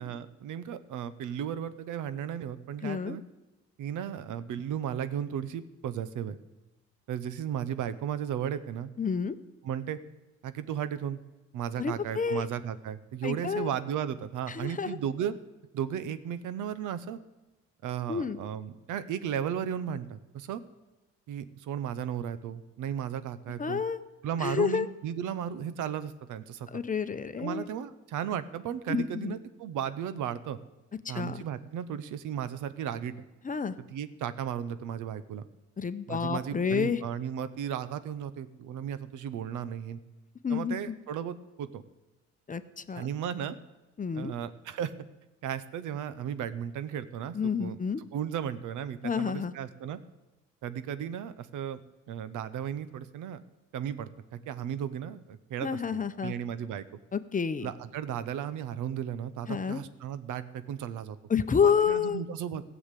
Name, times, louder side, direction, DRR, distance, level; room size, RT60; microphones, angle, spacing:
voice 1, 0.0-3.2 3.8-6.4 7.1-8.9 9.6-10.0 10.4-11.2 11.5-15.3 15.7-17.2 17.8-20.6 21.3-23.8 24.2-26.7 27.4-30.6 31.1-33.1 33.8-35.5 36.1-40.0 40.5-41.8 42.9-43.5 44.1-44.9 45.4-47.8 48.1-50.0 50.6-51.8 52.1-53.4 53.7-56.8 57.6-61.2 61.6-62.6, right 9 dB, 85° right, 13 dB, 0.9 m, -35 dB
voice 2, 2.8-3.2 9.0-9.4 11.8-12.4 13.2-13.7 14.5-15.0 18.1-18.4 23.6-24.0 24.4-24.9 26.7-27.7 28.9-29.3 31.0-31.4 33.4-33.7 35.8-37.0 40.4-40.9 42.5-43.1 44.0-44.3 47.3-48.0 49.0-49.5 55.6-56.3 57.1-57.7 59.5-59.8 61.3-62.2, left 6 dB, 25° left, 12 dB, 0.7 m, -29 dB
15.0 x 7.3 x 8.2 m, 1.1 s
cardioid pair, 90°, 30 cm